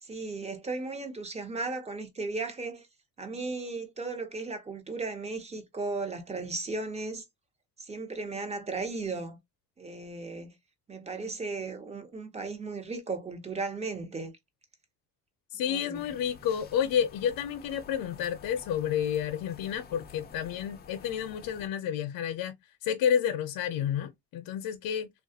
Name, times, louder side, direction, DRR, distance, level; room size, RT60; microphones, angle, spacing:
voice 1, 0.0-2.9 3.2-7.2 7.8-9.4 9.8-10.5 10.9-14.3 15.7-16.1, right 3 dB, 20° right, 0.7 m, -36 dB
voice 2, 15.5-22.6 22.8-25.1, left 9 dB, 80° left, 0.6 m, -30 dB
sound 1, 15.9-21.7, left 5 dB, 30° left, 0.4 m, -50 dB
3.1 x 2.3 x 2.7 m
cardioid pair, 135°, 34 cm